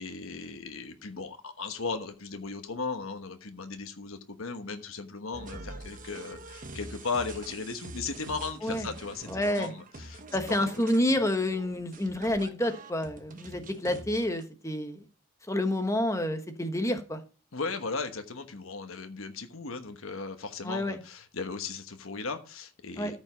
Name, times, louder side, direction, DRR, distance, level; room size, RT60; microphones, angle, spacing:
voice 1, 0.0-10.2 10.5-10.7 17.5-23.2, left 4 dB, 75° left, 7 dB, 1.2 m, -36 dB
sound 1, 5.3-14.4, right 2 dB, 40° right, 1.1 m, -45 dB
voice 2, 9.3-9.7 10.3-15.0 15.5-17.2 20.6-21.0 23.0-23.1, left 1 dB, 15° left, 7 dB, 1.1 m, -29 dB
14.0 x 5.4 x 5.1 m, 0.36 s
head